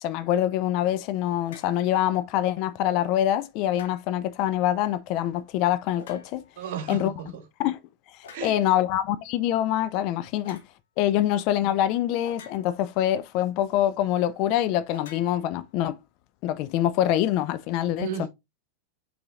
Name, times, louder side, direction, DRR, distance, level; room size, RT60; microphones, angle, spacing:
voice 1, 0.0-6.4 6.9-7.1 7.6-7.8 8.4-10.6 11.0-16.0 16.4-18.3, left 12 dB, 40° left, 0.4 m, -25 dB
sound 1, 1.4-1.8 3.7-4.3 5.9-6.6 8.2-8.6 10.4-10.7 12.2-13.0 14.9-16.0, left 5 dB, 60° left, 1.1 m, -49 dB
voice 2, 6.6-7.4 8.3-8.6 18.0-18.3, right 8 dB, 55° right, 1.2 m, -34 dB
5.4 x 4.0 x 2.4 m
figure-of-eight pair, 90°, 0 cm